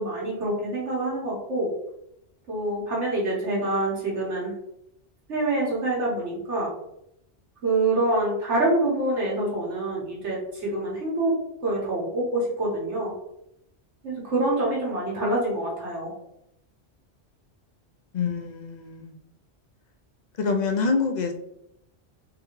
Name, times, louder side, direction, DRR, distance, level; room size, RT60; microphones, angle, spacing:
voice 1, 0.0-1.7 2.5-4.5 5.3-6.7 7.6-11.3 11.6-13.1 14.0-16.1, right 2 dB, 80° right, -4 dB, 1.7 m, -26 dB
voice 2, 18.1-19.2 20.4-21.3, left 4 dB, 50° left, 4 dB, 0.6 m, -26 dB
3.7 x 3.4 x 3.1 m, 0.78 s
omnidirectional pair, 1.2 m